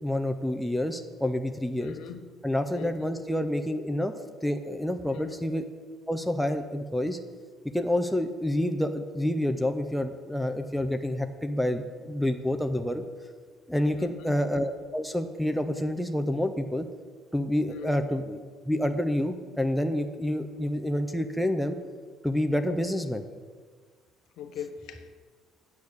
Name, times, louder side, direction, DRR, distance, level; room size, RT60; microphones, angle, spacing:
voice 1, 0.0-2.0 2.4-4.1 4.4-5.7 6.1-7.2 7.7-13.0 13.7-16.9 17.3-18.4 18.7-21.8 22.2-23.2, left 1 dB, ahead, 5 dB, 0.5 m, -28 dB
voice 2, 1.8-2.2 2.7-3.1 5.1-5.4 14.0-14.4 17.7-18.0 24.4-25.1, left 8 dB, 70° left, 7 dB, 1.0 m, -40 dB
8.5 x 8.5 x 6.4 m, 1.5 s
cardioid pair, 170°, 0 cm